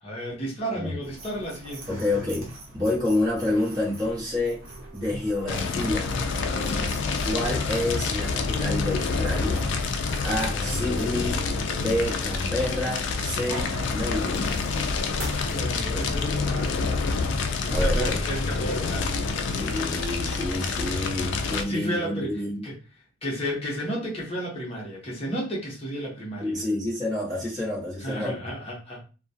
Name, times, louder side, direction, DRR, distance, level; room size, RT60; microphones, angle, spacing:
voice 1, 0.0-2.0 15.2-17.0 17.6-19.2 21.7-22.7 23.2-26.6 28.0-29.0, equal, 30° left, -3 dB, 0.7 m, -33 dB
sound 1, 1.0-20.8, equal, 75° right, 0.7 m, -40 dB
voice 2, 1.9-4.6 4.9-6.2 7.2-9.7 10.2-11.4 11.7-14.7 17.7-18.2 19.5-22.6 26.4-28.5, left 1 dB, 20° right, -6 dB, 1.0 m, -28 dB
Wind instrument woodwind instrument, 4.0-8.4 8.7-13.2, equal, 10° left, 1.1 m, -48 dB
Fire, 5.5-21.6, left 4 dB, 60° left, 0.3 m, -27 dB
2.2 x 2.1 x 2.7 m, 0.34 s
head